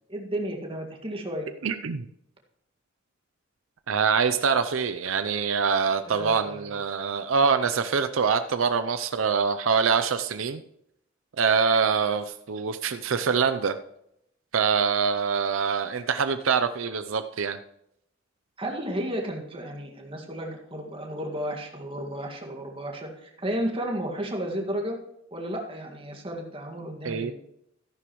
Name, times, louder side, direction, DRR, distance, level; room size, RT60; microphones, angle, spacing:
voice 1, 0.1-1.5 6.1-6.8 18.6-25.0 25.3-27.3, right 1 dB, 25° right, 1 dB, 1.9 m, -33 dB
voice 2, 1.6-2.1 3.9-10.6 11.4-13.7 14.5-17.6 27.0-27.3, right 6 dB, 80° right, 9 dB, 0.5 m, -24 dB
13.5 x 11.0 x 3.1 m, 0.78 s
head